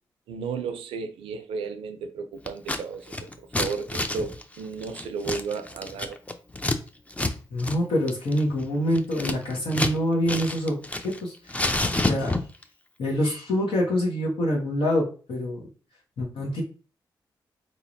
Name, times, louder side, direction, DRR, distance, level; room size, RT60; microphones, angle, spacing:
voice 1, 0.3-3.3 3.6-6.2, right 5 dB, 90° right, 0.4 m, -33 dB
Scissors, 2.5-2.8 3.1-6.8 7.1-7.3 7.6-7.8 8.1-10.0 10.3-11.2 11.5-12.6, left 2 dB, 15° left, 0.5 m, -28 dB
voice 2, 7.5-11.6 12.0-12.4 13.0-15.6 16.2-16.6, equal, 80° left, 1.4 m, -26 dB
3.8 x 2.9 x 2.6 m
supercardioid pair, 45°, 9 cm